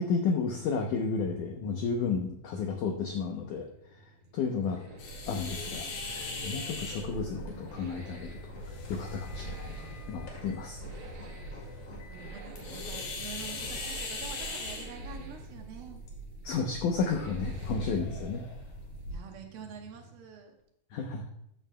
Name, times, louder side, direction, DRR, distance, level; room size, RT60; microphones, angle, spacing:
voice 1, 0.0-4.0 4.3-4.8 5.3-8.6 8.9-10.8 16.4-18.5 20.9-21.3, left 5 dB, 85° left, 3 dB, 1.8 m, -32 dB
Accelerating revving vroom, 2.2-20.3 20.6-20.7, right 2 dB, 50° right, 2.7 m, -51 dB
sound 1, 4.6-14.0, left 2 dB, 40° left, 2.3 m, -48 dB
sound 2, 5.0-19.2, left 1 dB, 70° left, 4.0 m, -40 dB
voice 2, 12.1-16.0 19.1-20.5, right 6 dB, 70° right, 3 dB, 2.7 m, -46 dB
14.0 x 8.3 x 2.2 m, 0.77 s
omnidirectional pair, 4.7 m